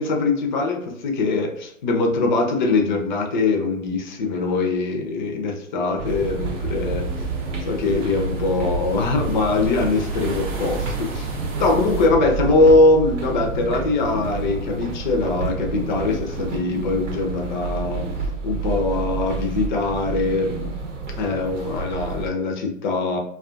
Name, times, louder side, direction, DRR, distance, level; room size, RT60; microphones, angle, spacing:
voice 1, 0.0-7.1 7.7-18.0 18.4-20.7 21.2-23.2, left 3 dB, 35° left, 3 dB, 0.4 m, -22 dB
sound 1, 6.0-12.1, right 3 dB, 25° right, 0.5 m, -39 dB
sound 2, 6.0-22.3, right 3 dB, 65° right, 0.7 m, -29 dB
2.3 x 2.2 x 2.4 m, 0.71 s
hypercardioid pair, 130°, 40 cm